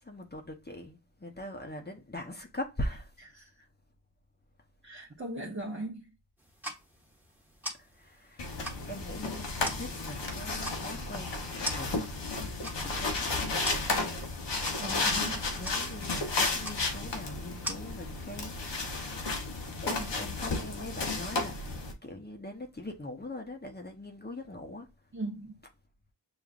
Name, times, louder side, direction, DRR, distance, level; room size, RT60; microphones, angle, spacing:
voice 1, 0.0-3.1 7.8-8.6 8.9-14.3 15.5-18.7 19.8-21.7 22.0-24.9, left 1 dB, 25° left, 0.9 m, -42 dB
voice 2, 4.8-6.1 14.8-15.5 19.9-20.0 25.1-25.6, right 1 dB, 30° right, 1.0 m, -38 dB
sound 1, 6.4-17.7, equal, 5° right, 1.4 m, -44 dB
sound 2, 8.4-21.9, left 3 dB, 85° left, 1.1 m, -33 dB
6.8 x 2.5 x 2.5 m
cardioid pair, 50°, 42 cm